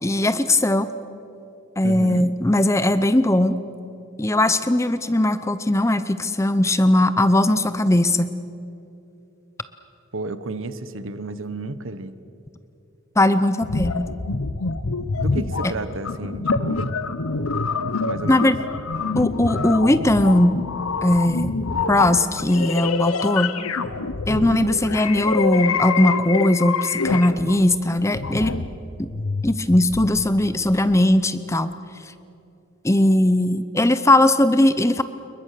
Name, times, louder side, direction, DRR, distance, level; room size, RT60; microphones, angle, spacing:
voice 1, 0.0-0.9 1.8-3.6 4.2-8.3 13.2-14.1 15.6-15.7 18.3-18.6 19.2-20.6 21.0-21.6 21.9-23.5 24.3-28.5 29.0-29.1 29.4-31.7 32.8-35.0, left 1 dB, 15° left, 12 dB, 0.6 m, -19 dB
voice 2, 1.8-2.3 10.1-12.1 15.2-16.9 18.0-18.5 24.3-24.7, right 2 dB, 65° right, 13 dB, 1.1 m, -32 dB
sound 1, 13.6-30.3 30.9-31.0, left 4 dB, 85° left, 1.0 m, -26 dB
28.0 x 22.5 x 6.7 m, 2.8 s
head